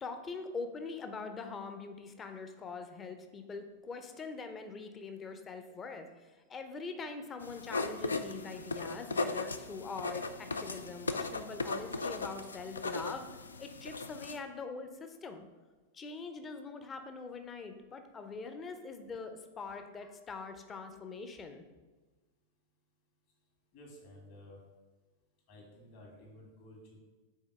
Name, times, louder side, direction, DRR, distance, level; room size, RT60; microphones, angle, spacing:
voice 1, 0.0-13.3 13.6-15.5 15.9-21.6, left 4 dB, 20° left, 7 dB, 0.6 m, -43 dB
sound 1, 7.4-14.4, left 3 dB, 75° left, 0.3 m, -37 dB
voice 2, 23.7-24.6 25.5-27.0, left 1 dB, 50° left, -1 dB, 1.9 m, -53 dB
5.5 x 4.0 x 4.6 m, 1.3 s
figure-of-eight pair, 90°, 0 cm